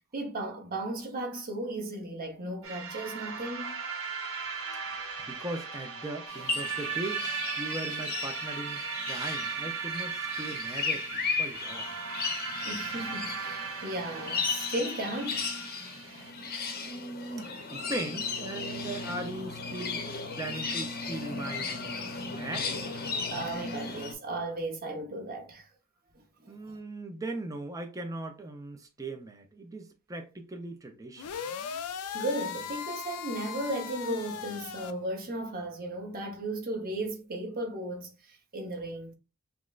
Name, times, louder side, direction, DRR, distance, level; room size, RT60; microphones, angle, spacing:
voice 1, 0.1-3.8 12.6-15.5 16.1-16.2 23.3-25.7 26.4-26.8 32.1-39.1, right 1 dB, 40° right, 0.8 m, -35 dB
sound 1, 2.6-16.3, right 5 dB, 65° right, 1.0 m, -37 dB
voice 2, 4.9-7.3 7.6-11.9 16.8-22.9 26.5-31.3, right 2 dB, 15° right, 0.5 m, -39 dB
sound 2, 6.3-24.1, left 4 dB, 45° left, 0.8 m, -36 dB
sound 3, 31.2-34.9, left 7 dB, 80° left, 0.4 m, -38 dB
5.9 x 2.1 x 2.4 m
head